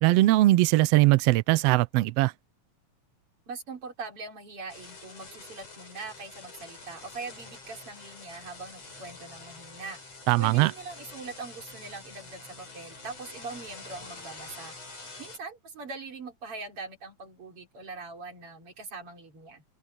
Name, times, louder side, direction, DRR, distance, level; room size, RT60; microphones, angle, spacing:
voice 1, 0.0-2.3 10.3-10.7, right 18 dB, 90° right, 1.4 m, -21 dB
voice 2, 3.5-10.0 10.4-14.7 15.2-19.6, right 4 dB, 45° right, 4.4 m, -42 dB
sound 1, 4.7-15.4, left 3 dB, 55° left, 7.7 m, -46 dB
omnidirectional pair, 3.5 m